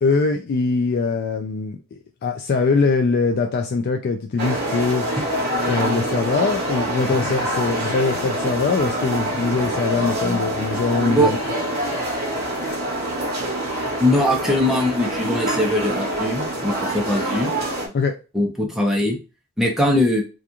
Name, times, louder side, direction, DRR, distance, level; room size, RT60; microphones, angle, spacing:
voice 1, 0.0-5.1 5.7-11.4 17.9-18.1, left 4 dB, 50° left, 3 dB, 0.3 m, -22 dB
sound 1, 4.4-17.9, right 1 dB, 50° right, 0.9 m, -25 dB
voice 2, 14.0-17.5 18.3-19.2 19.6-20.2, left 1 dB, ahead, 0 dB, 0.6 m, -20 dB
2.4 x 2.3 x 2.8 m, 0.31 s
head